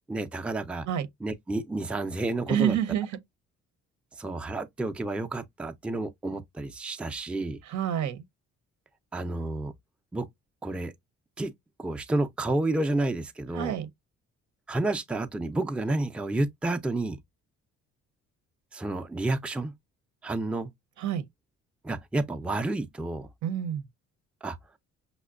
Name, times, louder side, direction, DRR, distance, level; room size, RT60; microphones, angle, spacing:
voice 1, 0.0-0.9 1.2-2.8 4.2-7.6 9.1-9.7 10.1-10.3 10.6-10.9 11.4-11.5 11.8-13.8 14.7-17.2 18.7-19.7 20.2-20.7 21.8-23.3 24.4-24.6, right 2 dB, 5° right, 0.4 m, -30 dB
voice 2, 2.5-3.1 7.6-8.2 13.5-13.9 21.0-21.3 23.4-23.9, right 10 dB, 75° right, 0.8 m, -28 dB
5.7 x 2.1 x 2.4 m
cardioid pair, 90°, 30 cm